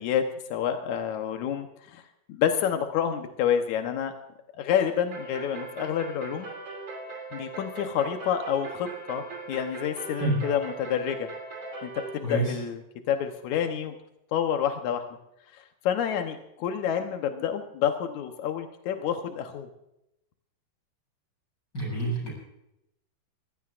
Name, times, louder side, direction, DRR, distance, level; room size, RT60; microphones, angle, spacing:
voice 1, 0.0-2.0 2.3-4.1 4.6-6.5 7.3-11.3 11.8-12.8 13.1-13.9 14.3-15.0 15.5-19.7, left 9 dB, 80° left, 5 dB, 1.7 m, -28 dB
sound 1, 5.1-12.2, right 3 dB, 40° right, 3.5 m, -39 dB
voice 2, 12.2-12.6 21.7-22.3, right 2 dB, 25° left, -2 dB, 7.3 m, -27 dB
23.5 x 15.5 x 2.5 m, 0.83 s
omnidirectional pair, 4.8 m